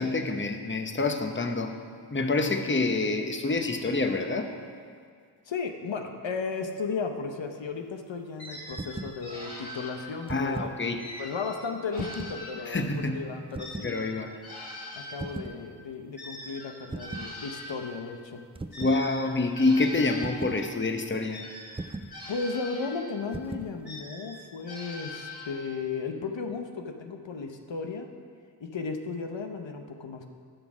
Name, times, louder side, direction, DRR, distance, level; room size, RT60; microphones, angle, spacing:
voice 1, 0.0-1.7 2.1-4.5 10.3-11.0 12.7-13.3 13.8-14.3 18.8-21.4, left 3 dB, 25° left, 5 dB, 0.9 m, -27 dB
voice 2, 5.5-10.7 11.2-12.9 13.1-13.9 14.9-18.4 18.8-19.0 22.3-28.1 28.6-30.3, left 4 dB, 85° left, 5 dB, 0.8 m, -35 dB
sound 1, 8.4-10.4 11.0-13.1 13.6-17.9 18.7-20.7 21.3-23.3 23.8-25.8, left 1 dB, 60° left, 3.0 m, -43 dB
sound 2, 8.7-9.2 10.1-10.8 11.9-12.4 13.5-13.9 15.2-15.6 16.9-17.3 18.6-19.0 20.2-20.6 21.8-22.2 23.3-23.7, right 2 dB, 15° right, 0.4 m, -38 dB
11.0 x 6.3 x 6.0 m, 2.1 s
wide cardioid pair, 50°, 43 cm